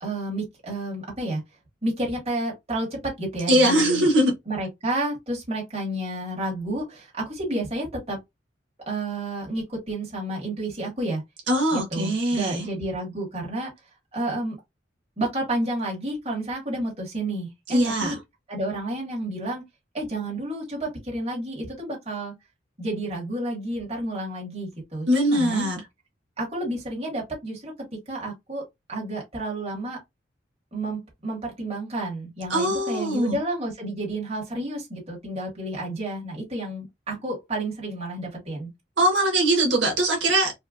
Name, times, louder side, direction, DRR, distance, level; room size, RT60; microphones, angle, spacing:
voice 1, 0.0-1.4 1.8-4.1 4.5-8.2 8.8-11.2 11.7-13.7 14.1-14.6 15.2-18.2 18.5-19.6 19.9-22.3 22.8-25.7 26.4-27.7 28.1-30.0 30.7-38.7, right 1 dB, 30° right, 1.9 m, -30 dB
voice 2, 3.5-4.3 11.5-12.7 17.7-18.2 25.1-25.8 32.5-33.4 39.0-40.6, right 1 dB, 75° right, 1.5 m, -21 dB
4.4 x 2.4 x 2.5 m
head